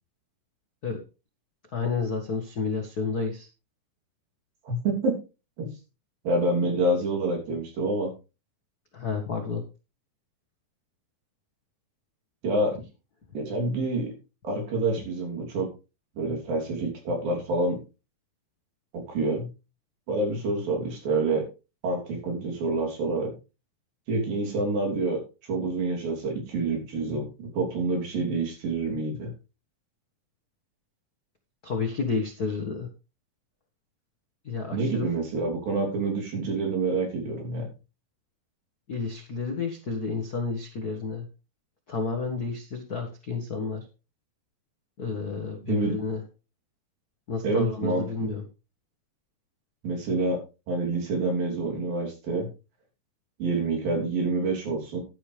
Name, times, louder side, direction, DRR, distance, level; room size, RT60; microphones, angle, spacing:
voice 1, 1.7-3.5 8.9-9.6 31.6-32.9 34.4-35.1 38.9-41.2 41.9-43.9 45.0-46.2 47.3-48.4, left 4 dB, 85° left, 4 dB, 0.8 m, -30 dB
voice 2, 4.6-5.2 5.6-5.7 6.2-8.1 12.4-12.7 13.3-14.1 14.4-15.7 16.2-17.8 18.9-19.5 20.1-21.5 21.8-23.4 24.1-25.2 25.5-29.3 34.7-37.7 45.6-45.9 47.4-48.3 49.8-50.4 50.7-52.5 53.4-55.0, right 2 dB, 70° right, 0 dB, 4.9 m, -27 dB
11.5 x 11.0 x 3.4 m, 0.31 s
omnidirectional pair, 4.2 m